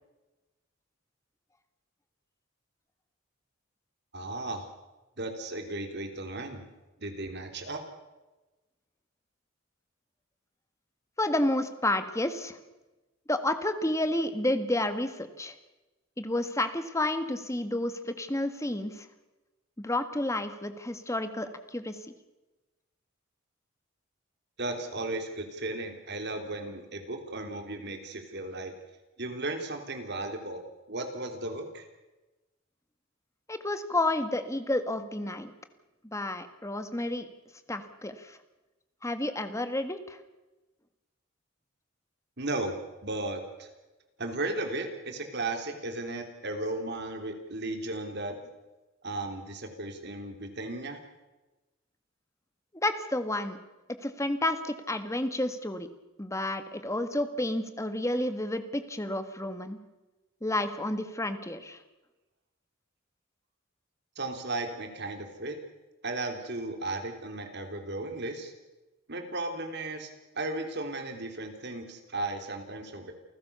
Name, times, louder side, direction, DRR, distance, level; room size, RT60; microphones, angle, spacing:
voice 1, 4.1-4.7 5.2-6.6 7.0-7.8 24.6-28.7 29.2-30.6 30.9-31.9 42.4-42.8 43.0-43.7 44.2-48.3 49.0-51.0 64.1-65.6 66.0-68.5 69.1-70.1 70.3-73.1, right 2 dB, 55° right, 5 dB, 3.4 m, -35 dB
voice 2, 11.2-12.6 13.3-15.5 16.2-19.1 19.8-22.0 33.5-35.5 36.0-37.3 37.7-38.4 39.0-40.2 52.7-53.6 54.0-55.9 56.2-59.8 60.4-61.8, left 1 dB, 15° left, 9 dB, 1.6 m, -30 dB
28.5 x 15.0 x 7.0 m, 1.1 s
head